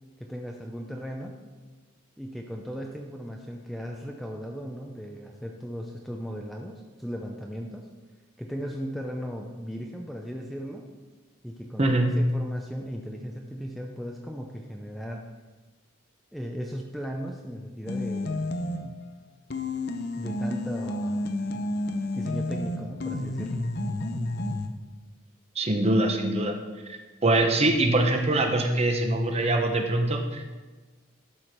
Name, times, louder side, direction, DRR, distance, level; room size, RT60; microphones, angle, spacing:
voice 1, 0.2-1.4 2.2-7.9 8.4-10.9 11.4-15.2 16.3-18.4 18.8-19.0 20.2-21.3 21.5-21.6 22.1-23.6, equal, ahead, 0 dB, 0.5 m, -37 dB
voice 2, 11.8-12.3 25.6-26.5 26.9-30.5, right 1 dB, 30° right, 4 dB, 0.9 m, -23 dB
sound 1, 17.9-19.0 19.5-24.7, left 2 dB, 50° left, 0.7 m, -30 dB
12.0 x 5.0 x 5.9 m, 1.3 s
head